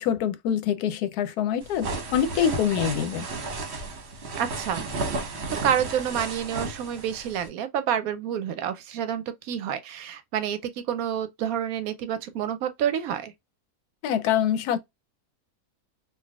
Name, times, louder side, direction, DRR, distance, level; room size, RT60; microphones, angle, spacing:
voice 1, 0.0-3.3 14.0-14.8, left 9 dB, 85° left, 1.1 m, -25 dB
sound 1, 1.6-7.5, right 3 dB, 50° right, 1.0 m, -33 dB
voice 2, 4.4-4.9 5.5-13.3, right 9 dB, 75° right, 1.0 m, -28 dB
3.3 x 2.6 x 2.2 m
omnidirectional pair, 1.6 m